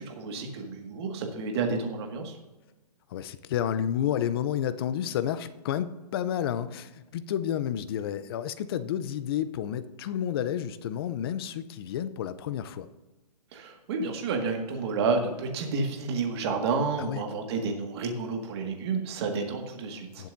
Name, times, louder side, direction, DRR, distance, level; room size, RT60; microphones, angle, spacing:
voice 1, 0.0-2.4 13.5-20.3, right 4 dB, 40° right, 3 dB, 1.9 m, -30 dB
voice 2, 3.1-12.9 17.0-17.2 20.2-20.3, left 10 dB, 35° left, 13 dB, 0.6 m, -30 dB
19.0 x 7.5 x 2.7 m, 1.1 s
hypercardioid pair, 145°, 21 cm